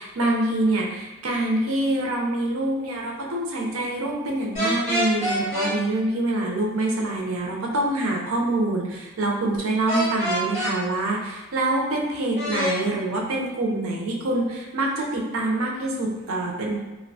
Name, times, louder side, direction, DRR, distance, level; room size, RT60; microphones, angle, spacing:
voice 1, 0.0-16.8, right 2 dB, 80° right, -1 dB, 0.5 m, -25 dB
sound 1, 4.5-5.7 9.9-10.7 12.3-12.7, equal, 35° left, 0.9 m, -25 dB
2.4 x 2.1 x 2.6 m, 1.1 s
head